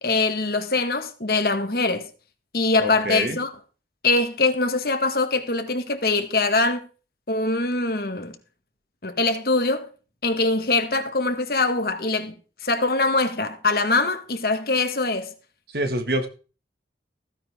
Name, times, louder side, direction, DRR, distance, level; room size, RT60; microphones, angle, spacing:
voice 1, 0.0-2.1 2.5-3.5 4.0-6.9 7.3-8.4 9.0-9.9 10.2-12.3 12.6-15.3, left 3 dB, 55° left, 1.8 m, -23 dB
voice 2, 2.8-3.4 15.7-16.3, right 1 dB, 60° right, 2.1 m, -26 dB
15.5 x 9.8 x 3.8 m
head